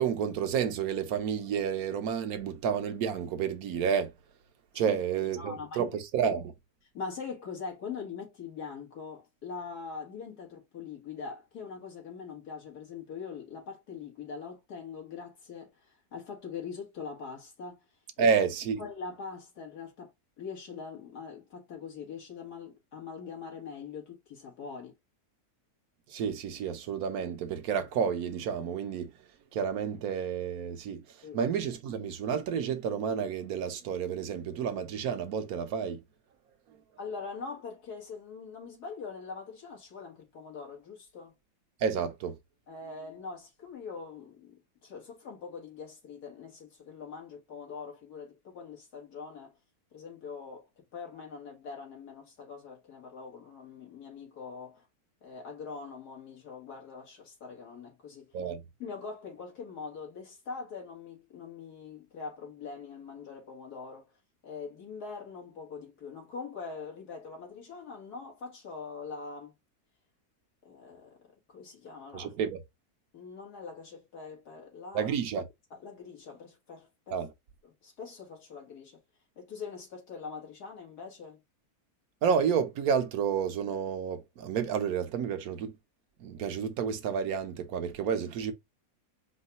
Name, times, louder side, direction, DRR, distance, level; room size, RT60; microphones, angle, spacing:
voice 1, 0.0-4.1 4.7-6.5 18.2-18.8 26.1-29.1 29.5-36.0 41.8-42.4 58.3-58.6 72.1-72.6 74.9-75.5 77.1-77.3 82.2-85.7 86.2-88.5, right 7 dB, 75° right, 1.2 m, -30 dB
voice 2, 4.9-5.9 6.9-17.8 18.2-18.3 18.8-24.9 31.2-31.4 37.0-41.4 42.7-49.5 49.9-54.9 55.2-58.3 58.8-64.1 64.4-69.5 70.7-71.2 71.5-72.3 73.1-75.1 75.7-77.2 77.6-79.0 79.4-81.4, left 5 dB, 90° left, 2.3 m, -43 dB
4.7 x 2.3 x 4.0 m
omnidirectional pair, 1.6 m